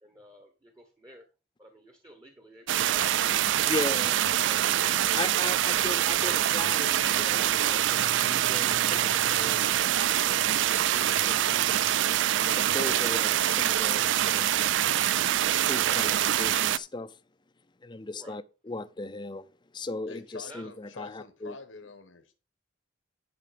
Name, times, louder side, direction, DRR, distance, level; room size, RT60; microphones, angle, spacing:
voice 1, 0.0-1.3 1.6-3.2 18.2-18.4 20.5-20.7, equal, 15° right, 1.1 m, -51 dB
sound 1, 2.7-16.8, right 12 dB, 70° right, 0.3 m, -25 dB
voice 2, 3.7-4.2 5.1-10.4 10.9-11.9 12.4-14.5 15.6-17.2 17.8-19.5 19.7-21.5, left 2 dB, 25° left, 0.5 m, -38 dB
sound 2, 4.6-9.7, equal, 50° right, 4.9 m, -49 dB
voice 3, 20.1-22.4, left 3 dB, 85° left, 1.3 m, -46 dB
11.0 x 5.1 x 5.0 m
head